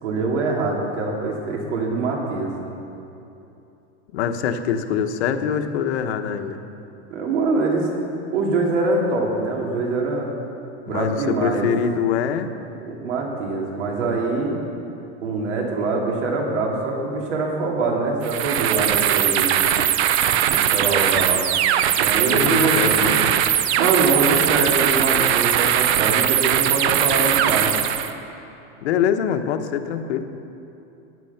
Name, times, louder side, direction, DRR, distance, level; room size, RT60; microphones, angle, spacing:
voice 1, 0.0-2.5 7.1-7.9 8.3-10.3 10.9-11.7 12.8-14.6 15.2-19.5 20.5-21.5 22.0-23.2 23.8-27.7, right 3 dB, 85° right, -1 dB, 3.1 m, -24 dB
voice 2, 4.1-6.6 10.9-12.5 22.2-23.3 28.8-30.3, left 7 dB, 65° left, 7 dB, 1.1 m, -24 dB
sound 1, 18.2-28.1, right 10 dB, 60° right, 0.8 m, -20 dB
16.0 x 10.5 x 5.8 m, 2.8 s
supercardioid pair, 180°, 35 cm